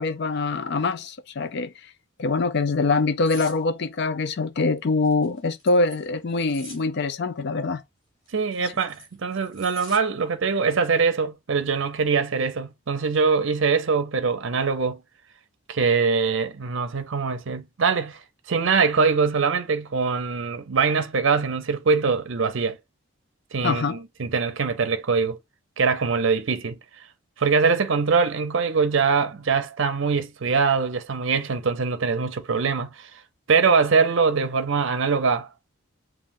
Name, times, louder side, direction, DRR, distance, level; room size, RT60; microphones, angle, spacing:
voice 1, 0.0-1.7 2.2-7.8 8.6-8.7 23.6-24.0, left 3 dB, 55° left, 0.5 m, -24 dB
sound 1, 3.2-3.6 5.0-6.8 8.3-10.0 10.4-10.7, left 1 dB, 20° left, 3.4 m, -44 dB
voice 2, 8.3-15.0 15.7-18.2 18.5-22.8 23.5-25.4 25.8-26.8 27.4-33.1 33.5-35.5, right 5 dB, 60° right, 0.6 m, -23 dB
7.4 x 2.6 x 2.6 m
head